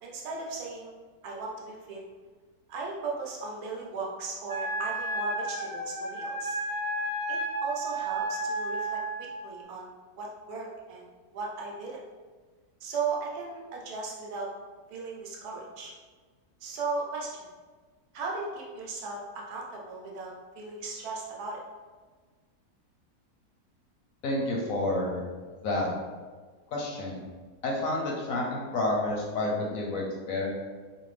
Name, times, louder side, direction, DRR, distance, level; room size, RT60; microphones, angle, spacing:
voice 1, 0.0-0.9 1.2-2.0 2.7-6.6 7.3-9.0 9.4-11.0 11.3-12.0 12.8-14.5 14.9-15.9 16.6-17.5 18.1-21.6, right 4 dB, 80° right, -2 dB, 1.1 m, -36 dB
Wind instrument woodwind instrument, 4.5-9.3, right 2 dB, 25° right, 0.4 m, -32 dB
voice 2, 24.2-25.2 25.6-25.9 26.7-27.2 27.6-30.5, left 2 dB, 70° left, -2 dB, 0.9 m, -29 dB
2.6 x 2.5 x 3.2 m, 1.4 s
omnidirectional pair, 1.6 m